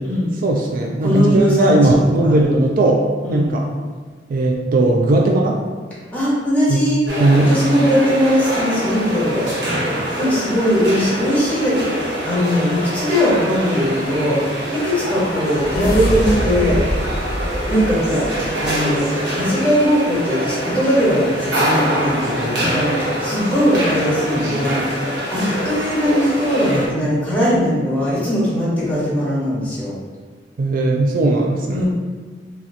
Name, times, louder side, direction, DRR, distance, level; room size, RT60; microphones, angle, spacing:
voice 1, 0.4-3.0 3.3-3.7 4.3-5.6 6.7-6.8 7.2-7.5 30.6-31.8, right 2 dB, 50° right, 1 dB, 0.3 m, -17 dB
voice 2, 1.0-2.6 3.2-3.5 6.1-7.0 7.4-9.5 10.2-17.1 17.7-18.3 18.6-29.9 31.7-31.8, equal, 10° left, -9 dB, 1.3 m, -20 dB
sound 1, 7.1-26.9, equal, 85° right, 1.1 m, -24 dB
sound 2, 14.9-18.9, equal, 60° left, 0.8 m, -25 dB
3.0 x 2.9 x 3.7 m, 1.5 s
head